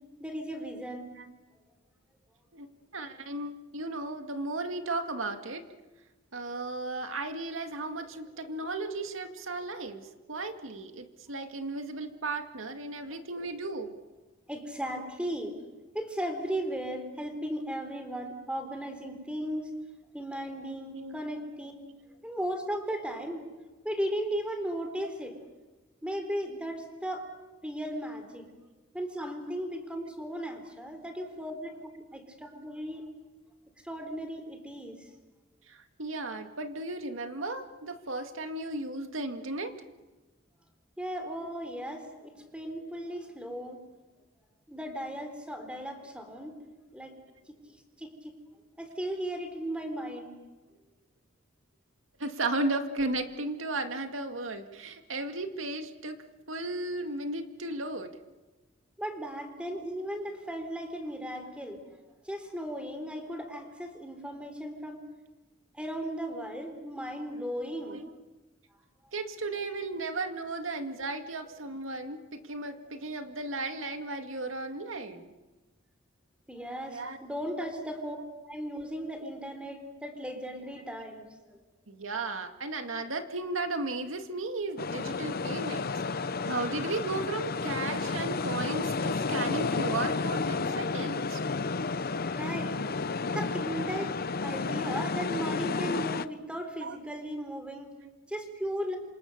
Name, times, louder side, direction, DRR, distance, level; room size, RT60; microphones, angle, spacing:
voice 1, 0.2-1.0 14.5-15.6 15.9-19.7 20.1-21.7 22.2-23.4 23.8-25.3 26.0-27.3 27.6-28.4 28.9-33.0 33.8-35.0 41.0-43.8 44.7-46.5 46.9-47.1 48.0-48.3 48.8-50.3 59.0-61.8 62.2-65.0 65.7-68.0 76.5-78.2 78.5-81.6 92.3-92.8 93.3-97.9 98.3-99.0, equal, 5° right, 6 dB, 3.9 m, -36 dB
voice 2, 2.5-5.6 6.3-13.9 20.8-21.1 31.2-31.3 35.7-39.7 52.2-56.2 56.5-58.1 67.9-68.1 69.1-75.3 76.9-77.2 77.8-77.9 81.9-91.4 96.8-97.0 98.0-98.1, right 2 dB, 90° right, 6 dB, 2.1 m, -35 dB
sound 1, 84.8-96.3, left 4 dB, 50° left, 0.8 m, -31 dB
28.0 x 26.5 x 6.8 m, 1.2 s
head